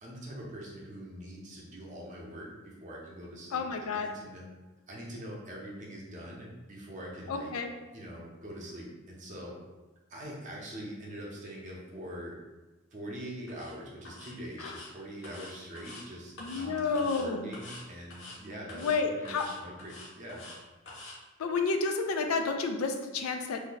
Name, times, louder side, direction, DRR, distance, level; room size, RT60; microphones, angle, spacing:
voice 1, 0.0-4.4 4.9-7.5 7.9-9.6 10.1-12.3 12.9-20.5, equal, 35° right, -3 dB, 0.6 m, -43 dB
voice 2, 3.5-4.1 7.3-7.7 14.6-14.7 16.4-17.5 18.7-19.5 21.4-23.6, left 4 dB, 90° left, 6 dB, 0.4 m, -30 dB
sound 1, 13.5-13.7 14.0-14.3 14.6-14.9 15.2-16.0 16.4-16.6 16.9-17.2 17.5-17.8 18.1-18.4 18.7-19.0 19.2-20.6 20.9-21.1, left 2 dB, 55° left, 0.7 m, -46 dB
2.6 x 2.2 x 3.9 m, 1.1 s
head